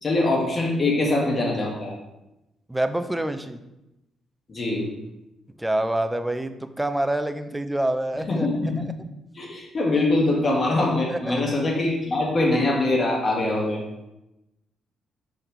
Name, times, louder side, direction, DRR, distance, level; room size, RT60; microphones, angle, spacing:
voice 1, 0.0-2.0 4.5-4.8 8.1-8.9 9.3-13.8, left 2 dB, 45° left, -2 dB, 2.3 m, -23 dB
voice 2, 2.7-3.6 5.6-8.5 8.8-8.9 11.1-11.4, right 1 dB, 10° right, 9 dB, 0.6 m, -26 dB
6.3 x 5.5 x 3.5 m, 0.93 s
hypercardioid pair, 50°, 0 cm